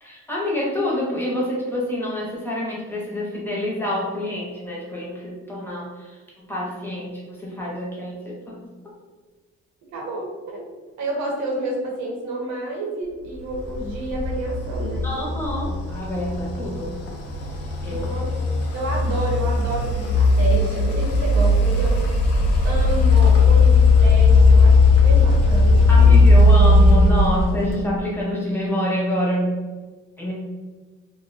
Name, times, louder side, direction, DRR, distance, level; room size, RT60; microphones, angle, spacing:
voice 1, 0.0-5.9 6.5-7.1 7.4-8.6 15.0-16.9 17.8-18.1 25.9-29.5 30.2-30.3, left 1 dB, 5° left, -5 dB, 0.7 m, -26 dB
voice 2, 9.9-10.6 11.0-15.4 17.9-18.3 18.7-22.0 22.6-26.1, right 1 dB, 80° right, -3 dB, 0.8 m, -29 dB
sound 1, 13.5-28.0, left 3 dB, 55° left, 0.5 m, -17 dB
2.4 x 2.2 x 2.5 m, 1.3 s
cardioid pair, 140°, 29 cm